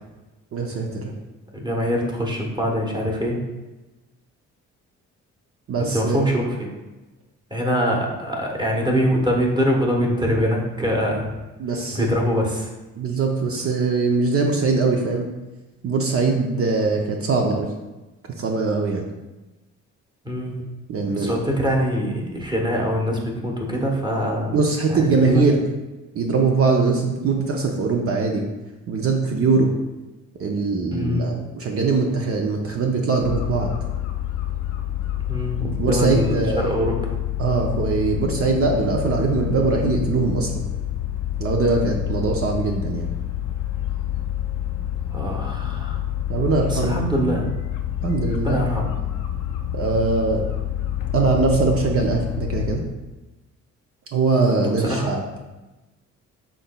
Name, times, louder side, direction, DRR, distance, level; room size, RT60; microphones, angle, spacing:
voice 1, 0.5-1.1 5.7-6.3 11.6-12.1 13.0-15.3 15.8-17.7 18.4-19.1 20.9-21.3 24.5-25.6 26.1-28.5 28.9-29.7 30.4-33.7 35.8-36.7 37.4-40.7 41.4-43.1 46.3-46.9 48.0-48.6 49.7-50.4 51.1-52.8 54.1-55.2, right 4 dB, 50° right, 1 dB, 0.6 m, -21 dB
voice 2, 1.5-3.4 5.8-6.7 7.5-11.3 11.9-12.7 20.2-20.6 21.1-24.5 24.9-25.6 30.9-31.4 35.3-37.1 45.1-46.0 46.7-47.5 48.4-48.9 54.6-55.1, equal, 15° right, -1 dB, 1.0 m, -24 dB
sound 1, 33.2-52.8, left 11 dB, 85° left, 0.5 m, -27 dB
6.0 x 4.0 x 2.2 m, 1.1 s
cardioid pair, 90°, 30 cm